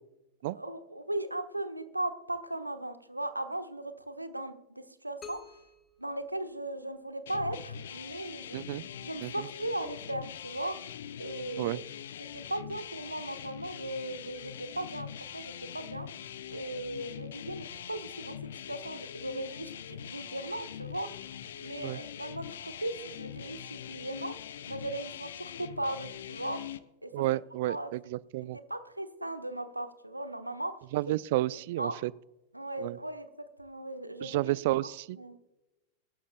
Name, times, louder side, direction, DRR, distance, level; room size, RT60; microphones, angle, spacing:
voice 1, 0.5-5.6 6.0-8.6 9.0-10.8 11.2-11.8 12.3-15.1 15.3-16.1 16.5-18.4 18.7-21.1 21.6-24.4 24.7-26.6 27.0-27.1 27.7-27.9 28.5-30.7 31.0-31.2 31.8-32.0 32.5-34.5 34.8-35.4, right 1 dB, 85° right, 8 dB, 1.1 m, -37 dB
sound 1, 5.2-7.1, left 6 dB, 25° left, 1.5 m, -51 dB
sound 2, 7.3-26.8, left 9 dB, 60° left, 0.7 m, -43 dB
voice 2, 8.5-8.8 9.2-9.3 11.6-11.8 21.8-22.0 27.1-28.6 30.9-32.1 32.8-33.0 34.2-35.2, right 17 dB, 50° right, 22 dB, 0.4 m, -31 dB
23.0 x 12.5 x 2.2 m, 0.97 s
figure-of-eight pair, 90°, 0 cm